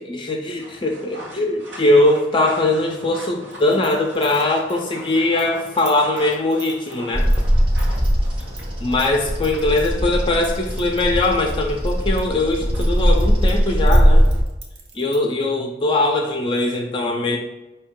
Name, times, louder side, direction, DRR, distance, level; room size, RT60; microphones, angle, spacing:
voice 1, 0.0-7.3 8.8-14.3 14.9-17.4, left 2 dB, 25° left, 1 dB, 0.4 m, -21 dB
sound 1, 0.6-14.1, equal, 90° right, 1.4 m, -41 dB
sound 2, 3.5-8.6 8.9-9.9 10.4-12.2 12.5-15.3, right 4 dB, 60° right, 0.8 m, -42 dB
Bird vocalization bird call bird song, 7.1-14.4, equal, 30° right, 0.6 m, -19 dB
5.0 x 2.7 x 3.6 m, 1.0 s
head